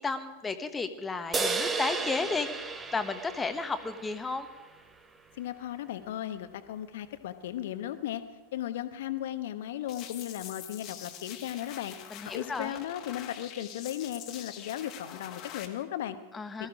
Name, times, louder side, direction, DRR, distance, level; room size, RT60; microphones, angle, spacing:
voice 1, 0.0-4.5 12.1-12.8 16.3-16.7, left 4 dB, 15° left, 9 dB, 1.3 m, -33 dB
sound 1, 1.3-4.8, right 4 dB, 20° right, 1.2 m, -34 dB
voice 2, 5.3-8.2 8.5-12.0 12.2-16.2 16.6-16.7, left 12 dB, 60° left, 11 dB, 1.1 m, -36 dB
sound 2, 9.9-15.7, left 10 dB, 40° left, 1.7 m, -45 dB
19.0 x 14.0 x 5.0 m, 1.2 s
figure-of-eight pair, 90°, 0 cm